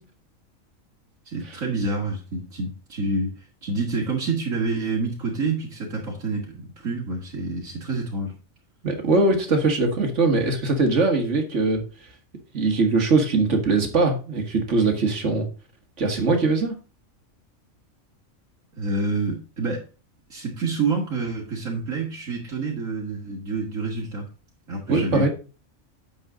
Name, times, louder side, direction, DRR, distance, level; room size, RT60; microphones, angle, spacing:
voice 1, 1.3-8.3 18.7-19.9 20.3-24.3 24.7-25.3, right 3 dB, 75° right, -3 dB, 2.6 m, -28 dB
voice 2, 8.8-11.8 12.5-15.5 16.0-16.7 24.9-25.3, right 3 dB, 60° right, 4 dB, 2.2 m, -21 dB
9.8 x 7.1 x 3.8 m, 0.34 s
omnidirectional pair, 1.4 m